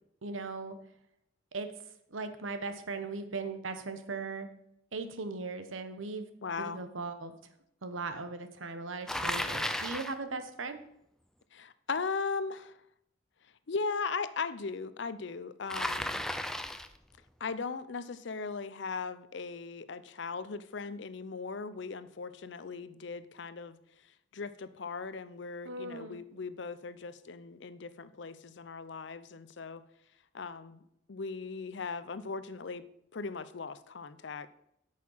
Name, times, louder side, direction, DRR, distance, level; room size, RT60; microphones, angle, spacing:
voice 1, 0.2-0.8 1.5-1.7 2.1-4.5 4.9-6.3 6.6-7.3 7.8-10.8 25.6-26.2, right 3 dB, 85° right, 9 dB, 1.0 m, -38 dB
voice 2, 6.4-6.8 11.5-12.7 13.7-16.1 17.4-23.8 24.3-29.8 30.3-30.8 31.1-32.8 33.1-34.5, left 4 dB, 65° left, 14 dB, 0.6 m, -38 dB
Bicycle, 9.1-10.2 15.7-17.0, left 1 dB, 5° left, 0.4 m, -34 dB
8.5 x 6.6 x 5.6 m, 0.77 s
head